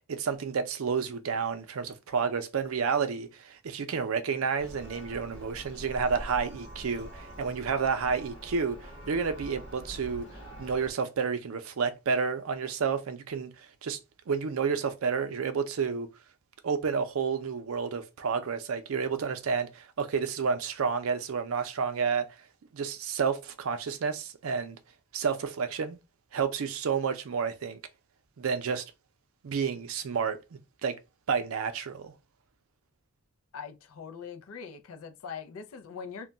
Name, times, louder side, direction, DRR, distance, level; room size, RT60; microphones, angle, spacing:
voice 1, 0.1-8.8 9.1-10.3 10.6-13.5 13.8-14.0 14.3-16.1 16.6-22.3 22.7-24.8 25.1-26.0 26.3-27.8 28.4-28.8 29.4-30.4 30.8-31.0 31.3-32.1, right 6 dB, 85° right, 0.5 m, -30 dB
Church bell, 4.6-10.9, equal, 55° left, 0.9 m, -44 dB
voice 2, 33.5-36.3, left 6 dB, 85° left, 0.4 m, -42 dB
2.2 x 2.2 x 3.8 m
head